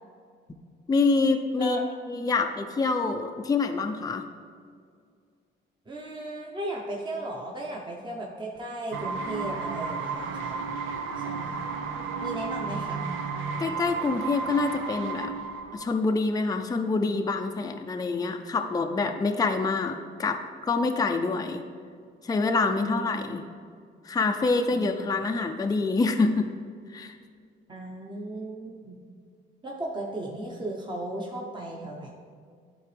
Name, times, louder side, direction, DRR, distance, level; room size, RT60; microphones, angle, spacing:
voice 1, 0.9-1.8 2.1-4.2 13.6-15.3 15.7-21.6 22.2-23.4 24.0-26.5 26.9-27.2, left 3 dB, 20° left, 5 dB, 0.5 m, -26 dB
voice 2, 5.9-10.6 11.2-11.6 12.2-13.0 22.7-23.1 24.7-24.9 27.7-29.0 29.6-32.1, right 1 dB, 25° right, -2 dB, 1.0 m, -36 dB
sound 1, 8.9-15.8, right 4 dB, 80° right, 0.6 m, -33 dB
11.5 x 3.9 x 3.3 m, 2.1 s
cardioid pair, 90°, 20 cm